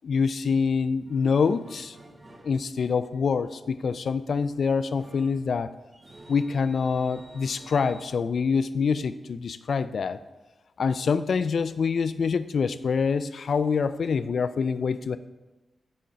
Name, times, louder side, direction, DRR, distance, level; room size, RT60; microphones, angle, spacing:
voice 1, 0.0-2.0 2.4-5.7 6.3-10.2 10.8-15.2, left 5 dB, 65° left, 13 dB, 0.3 m, -25 dB
sound 1, 0.8-8.0, right 1 dB, 30° right, 0.8 m, -51 dB
6.3 x 3.9 x 5.6 m, 1.1 s
cardioid pair, 75°, 0 cm